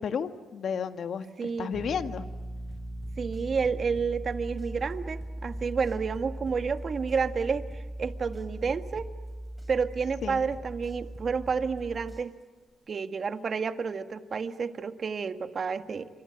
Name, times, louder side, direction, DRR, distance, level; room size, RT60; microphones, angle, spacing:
voice 1, 0.0-2.3 10.2-10.4, left 7 dB, 65° left, 9 dB, 1.6 m, -33 dB
voice 2, 1.4-1.7 3.2-9.1 9.7-12.3 12.9-16.1, right 5 dB, 50° right, 9 dB, 1.7 m, -30 dB
sound 1, 1.7-12.2, right 1 dB, 20° right, 3.7 m, -39 dB
sound 2, 2.7-4.3 4.6-6.8 7.1-9.3 9.6-11.8 12.1-12.7, equal, 5° left, 7.3 m, -52 dB
29.5 x 25.5 x 8.0 m, 1.4 s
supercardioid pair, 60°, 0 cm